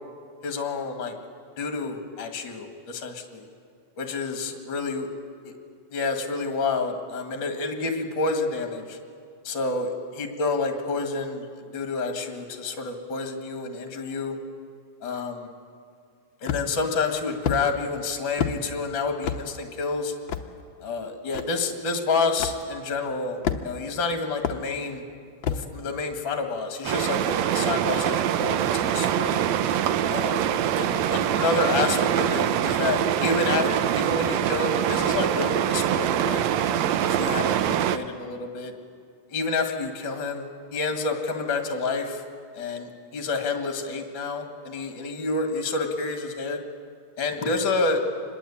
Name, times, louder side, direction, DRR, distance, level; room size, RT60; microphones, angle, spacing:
voice 1, 0.4-1.1 1.6-3.4 4.0-5.1 5.4-5.5 5.9-9.0 9.4-11.4 11.7-14.4 15.0-15.5 16.4-20.1 20.8-25.0 25.5-29.4 30.1-38.7 39.3-42.2 42.5-46.6 47.2-48.0, left 3 dB, 45° left, 5 dB, 2.5 m, -29 dB
sound 1, 16.5-16.9 17.4-17.6 18.4-18.6 19.2-19.4 20.3-20.5 21.3-21.4 22.4-22.6 23.4-23.9 24.4-24.6 25.4-25.7, left 8 dB, 65° left, 1.2 m, -27 dB
sound 2, 26.8-38.0, right 10 dB, 75° right, 2.0 m, -24 dB
26.0 x 21.0 x 8.5 m, 2.2 s
omnidirectional pair, 3.4 m